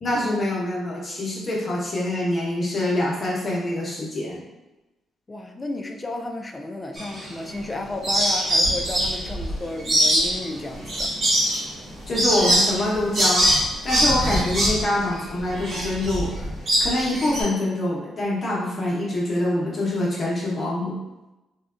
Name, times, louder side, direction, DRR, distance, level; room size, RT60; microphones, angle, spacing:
voice 1, 0.0-4.4 12.1-13.5 13.8-20.9, left 1 dB, 40° left, -5 dB, 0.8 m, -25 dB
voice 2, 5.3-11.1, left 2 dB, 20° left, 3 dB, 0.3 m, -33 dB
sound 1, 7.0-7.7 8.0-17.4, equal, 50° right, 1.0 m, -22 dB
3.2 x 2.2 x 2.4 m, 1.0 s
cardioid pair, 90°, 0 cm